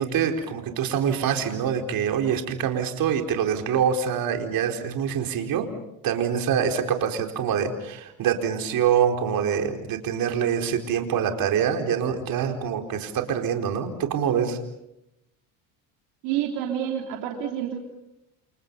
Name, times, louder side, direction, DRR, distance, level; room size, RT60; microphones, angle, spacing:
voice 1, 0.0-5.7 6.0-14.6, right 8 dB, 55° right, 4 dB, 4.5 m, -25 dB
voice 2, 16.2-17.8, right 10 dB, 75° right, 2 dB, 3.3 m, -28 dB
29.0 x 29.0 x 5.5 m, 0.85 s
supercardioid pair, 95°, 41 cm